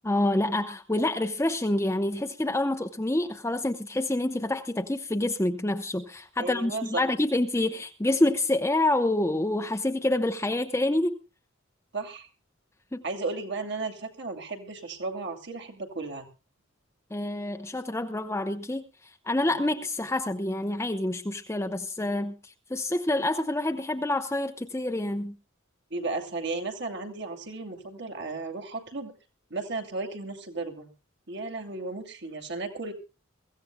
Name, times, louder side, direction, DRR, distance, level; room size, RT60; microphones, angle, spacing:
voice 1, 0.0-11.2 12.9-13.0 17.1-18.8 19.2-25.3, left 1 dB, 15° left, 0.7 m, -27 dB
voice 2, 6.4-7.0 11.9-12.3 13.0-16.3 19.5-19.6 25.9-29.1 29.5-30.9 31.3-32.9, right 3 dB, 60° right, 2.5 m, -34 dB
23.5 x 15.0 x 2.2 m
head